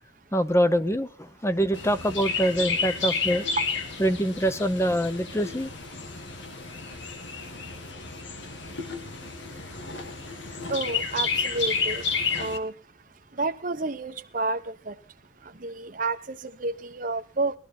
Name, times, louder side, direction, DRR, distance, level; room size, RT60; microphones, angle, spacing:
voice 1, 0.3-3.5 4.0-5.7, equal, 15° left, 11 dB, 0.8 m, -24 dB
Chirp tweet, 1.7-12.6, left 5 dB, 90° left, 1.7 m, -31 dB
voice 2, 10.7-12.0 12.3-12.7 13.4-14.9 15.6-17.5, right 3 dB, 45° right, 7 dB, 0.9 m, -30 dB
20.0 x 12.0 x 4.3 m, 0.36 s
head